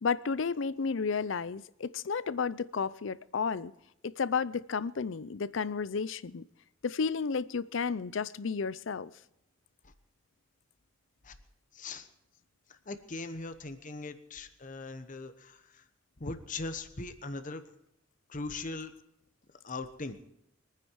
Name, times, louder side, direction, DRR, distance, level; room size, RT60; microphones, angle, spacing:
voice 1, 0.0-3.7 4.0-6.4 6.8-9.1, left 5 dB, 70° left, 0.5 m, -32 dB
voice 2, 11.7-12.1 12.7-15.8 16.2-17.6 18.3-18.9 19.6-20.2, left 3 dB, 40° left, 1.1 m, -40 dB
23.5 x 9.5 x 4.7 m
head